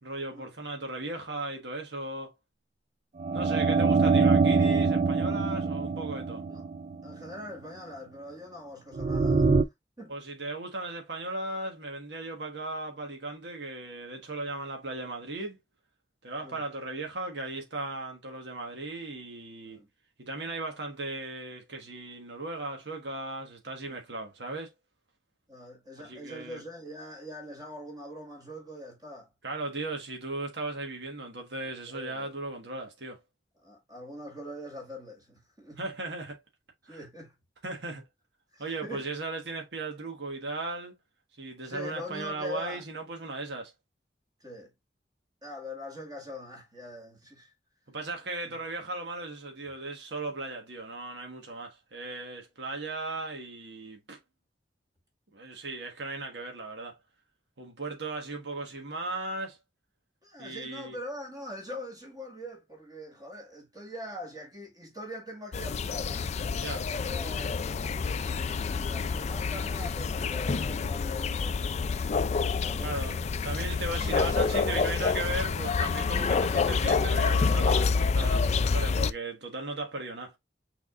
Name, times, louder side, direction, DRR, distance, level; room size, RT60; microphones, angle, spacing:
voice 1, 0.0-2.3 3.3-6.4 10.1-15.6 16.2-19.8 20.2-24.7 26.0-26.6 29.4-33.2 35.8-36.4 36.9-37.0 37.6-38.0 38.6-40.9 41.4-43.7 47.9-54.2 55.3-57.0 57.6-59.6 60.4-61.0 66.6-66.9 72.8-80.3, right 2 dB, 70° right, 1.4 m, -37 dB
sound 1, 3.2-7.2 9.0-9.6, right 4 dB, 40° right, 0.4 m, -24 dB
voice 2, 3.6-4.1 6.5-6.6 7.0-9.5 10.0-10.2 16.4-16.6 19.6-19.9 23.9-24.0 25.5-29.3 31.9-32.3 33.6-35.8 36.9-37.3 38.5-39.0 41.6-42.8 44.4-44.7 45.4-47.5 48.4-48.6 60.2-66.3 66.9-67.6 68.6-71.7 72.6-73.1 73.9-74.9, left 1 dB, 25° right, 1.8 m, -42 dB
sound 2, 65.5-79.1, left 5 dB, 40° left, 0.3 m, -28 dB
6.1 x 3.6 x 2.4 m
head